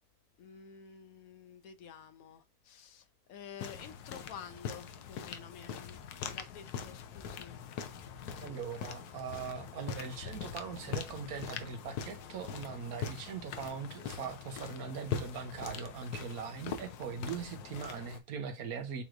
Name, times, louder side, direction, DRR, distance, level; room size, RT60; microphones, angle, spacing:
voice 1, 0.4-6.0 6.2-7.6, left 7 dB, 70° left, 1.0 m, -50 dB
sound 1, 3.6-18.2, left 7 dB, 90° left, 1.2 m, -42 dB
voice 2, 8.4-19.0, right 6 dB, 70° right, 1.3 m, -41 dB
6.8 x 3.1 x 2.5 m
omnidirectional pair, 1.6 m